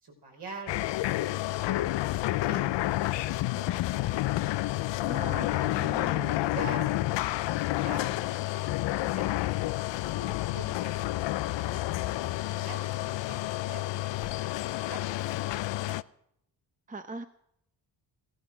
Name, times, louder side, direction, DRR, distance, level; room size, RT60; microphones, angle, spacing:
voice 1, 0.0-2.0 2.3-4.1 5.2-5.4 6.1-11.9 12.5-14.5 14.9-15.0 15.6-16.0, right 3 dB, 65° right, 1 dB, 5.6 m, -46 dB
sound 1, 0.7-16.0, left 16 dB, 75° left, 0.6 m, -30 dB
voice 2, 5.0-6.4 16.9-17.2, right 3 dB, 20° right, 8 dB, 0.9 m, -40 dB
16.0 x 12.5 x 6.4 m, 0.76 s
cardioid pair, 70°, 44 cm